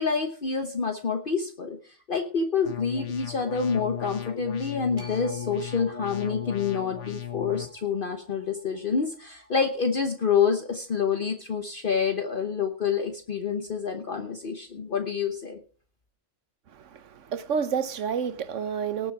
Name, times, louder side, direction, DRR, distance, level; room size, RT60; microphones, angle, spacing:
voice 1, 0.0-15.6, left 6 dB, 50° left, 1.2 m, -27 dB
sound 1, 2.7-7.7, left 10 dB, 80° left, 1.7 m, -36 dB
sound 2, 5.0-11.2, right 1 dB, 25° left, 4.3 m, -51 dB
voice 2, 17.3-19.1, right 7 dB, 90° right, 1.3 m, -29 dB
19.0 x 6.8 x 4.7 m
omnidirectional pair, 1.2 m